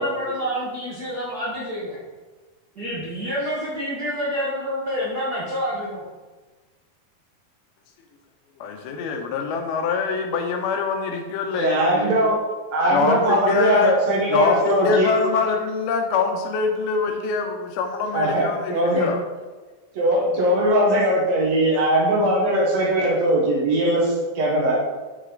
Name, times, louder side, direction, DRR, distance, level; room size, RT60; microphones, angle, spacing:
voice 1, 0.0-2.0 2.7-6.0, equal, 80° right, -7 dB, 0.8 m, -28 dB
voice 2, 8.6-12.2 12.9-13.9 14.3-19.2, left 5 dB, 90° left, 4 dB, 2.8 m, -24 dB
voice 3, 11.5-12.4 12.7-15.1 18.1-19.1 20.0-24.8, right 1 dB, 60° right, -3 dB, 2.0 m, -20 dB
6.7 x 6.5 x 3.8 m, 1.3 s
omnidirectional pair, 4.2 m